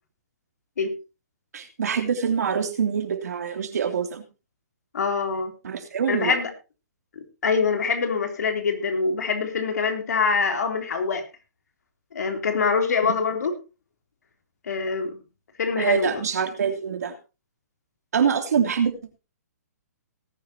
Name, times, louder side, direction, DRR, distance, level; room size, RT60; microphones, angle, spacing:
voice 1, 1.5-4.2 5.6-6.4 15.8-17.1 18.1-19.2, right 7 dB, 70° right, 6 dB, 3.0 m, -25 dB
voice 2, 4.9-5.5 6.1-6.5 7.4-11.2 12.1-13.5 14.6-15.2 15.6-16.2, left 5 dB, 75° left, 5 dB, 3.4 m, -24 dB
18.5 x 10.0 x 2.9 m, 0.30 s
hypercardioid pair, 165°, 9 cm